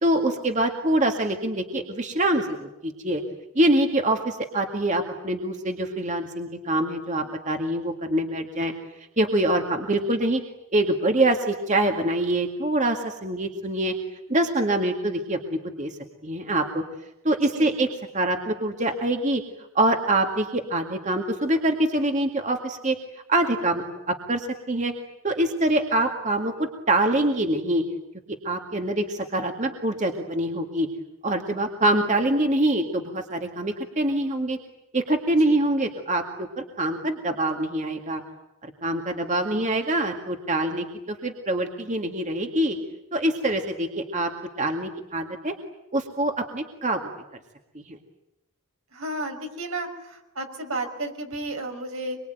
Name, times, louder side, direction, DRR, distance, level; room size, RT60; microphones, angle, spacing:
voice 1, 0.0-3.2 3.6-8.7 9.2-10.4 10.7-13.9 14.3-15.4 15.8-15.9 16.2-16.8 17.2-17.9 18.1-19.4 19.7-23.0 23.3-24.9 25.2-26.5 26.9-27.8 28.4-30.9 31.2-34.6 34.9-36.5 36.8-38.2 38.8-42.8 43.1-45.5 45.9-47.0 47.9-48.0, right 1 dB, 35° right, 4 dB, 2.1 m, -24 dB
voice 2, 48.9-52.2, right 2 dB, 75° right, 4 dB, 5.6 m, -32 dB
25.5 x 24.0 x 9.3 m, 0.91 s
head